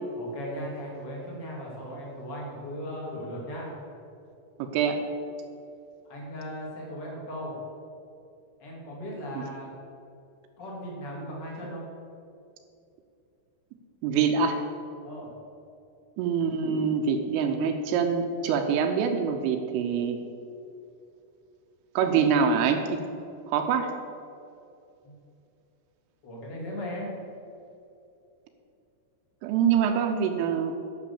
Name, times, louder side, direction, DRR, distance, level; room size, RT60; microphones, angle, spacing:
voice 1, 0.2-3.7 6.1-7.5 8.6-9.7 10.6-11.9 15.0-15.3 25.0-25.1 26.2-27.1, equal, 35° left, -3 dB, 1.9 m, -37 dB
voice 2, 4.6-5.0 9.4-9.5 14.0-14.6 16.2-20.2 22.0-23.0 23.5-23.9 29.4-30.8, right 6 dB, 80° right, 5 dB, 3.2 m, -25 dB
12.0 x 7.0 x 7.0 m, 2.6 s
omnidirectional pair, 6.0 m